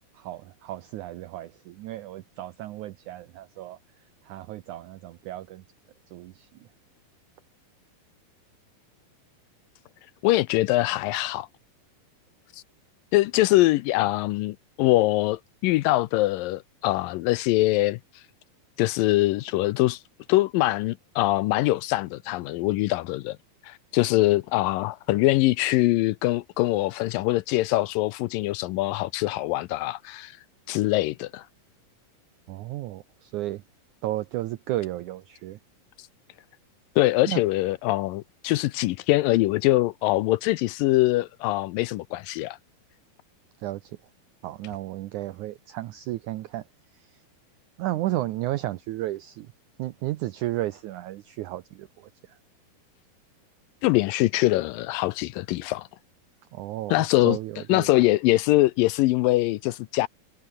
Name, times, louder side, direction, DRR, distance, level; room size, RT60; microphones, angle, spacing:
voice 1, 0.2-3.8 4.2-5.6 6.1-6.5 32.5-33.6 34.0-35.6 37.3-37.4 43.6-43.9 44.4-46.6 47.8-49.5 49.8-52.1 56.5-57.9, right 15 dB, 90° right, 1.7 m, -33 dB
voice 2, 10.2-11.5 13.1-18.0 18.8-20.0 20.3-23.4 23.6-30.4 30.7-31.4 37.0-42.6 53.8-55.9 56.9-57.4 57.7-60.1, left 18 dB, 80° left, 2.1 m, -23 dB
omnidirectional pair, 4.4 m